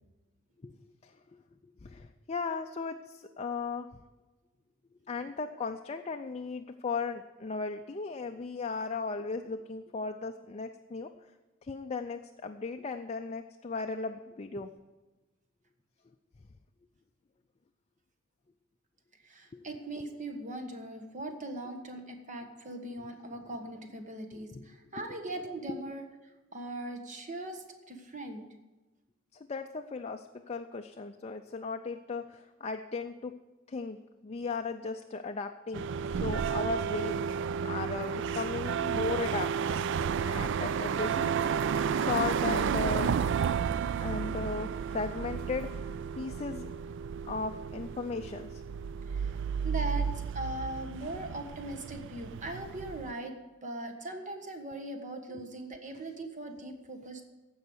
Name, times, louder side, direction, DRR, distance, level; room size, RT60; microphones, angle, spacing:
voice 1, 1.8-3.9 5.0-11.1 11.6-14.7 19.5-19.6 24.5-24.7 25.7-25.8 29.3-33.4 33.7-35.9 36.2-39.6 40.2-41.3 41.7-43.2 44.0-45.9 46.2-46.7 47.2-48.6 55.3-55.4, left 4 dB, 30° left, 5 dB, 0.4 m, -36 dB
voice 2, 19.2-26.0 26.5-28.4 40.4-40.5 44.2-44.3 49.1-49.4 49.6-53.4 53.6-57.2, right 1 dB, 35° right, 5 dB, 1.4 m, -40 dB
sound 1, 35.7-53.1, right 7 dB, 60° right, 0.3 m, -32 dB
15.0 x 5.5 x 7.9 m, 1.2 s
head